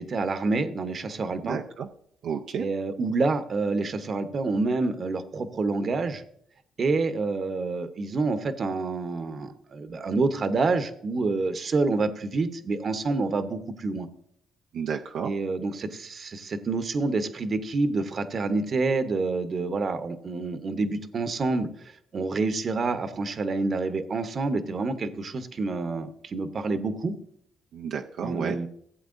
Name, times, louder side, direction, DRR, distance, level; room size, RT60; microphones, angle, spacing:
voice 1, 0.0-1.6 2.6-6.2 6.8-14.1 15.2-21.7 22.1-27.1 28.2-28.7, right 3 dB, 45° right, 10 dB, 0.9 m, -27 dB
voice 2, 1.4-1.9 2.2-2.7 14.7-15.3 27.7-28.6, right 7 dB, 75° right, 3 dB, 0.5 m, -31 dB
15.5 x 8.0 x 2.6 m, 0.66 s
cardioid pair, 90°, 0 cm